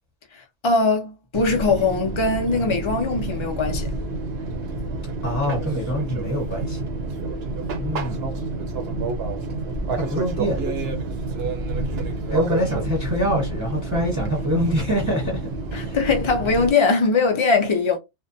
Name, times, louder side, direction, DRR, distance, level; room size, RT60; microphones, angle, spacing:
voice 1, 0.6-3.9 15.7-18.0, left 4 dB, 50° left, 0.3 m, -21 dB
Fixed-wing aircraft airplane, 1.3-16.7, right 3 dB, 65° right, 0.8 m, -29 dB
voice 2, 5.2-6.8 7.8-8.2 9.9-10.6 12.3-15.4 15.7-16.0, equal, 15° right, 0.8 m, -25 dB
2.6 x 2.1 x 2.5 m
omnidirectional pair, 1.2 m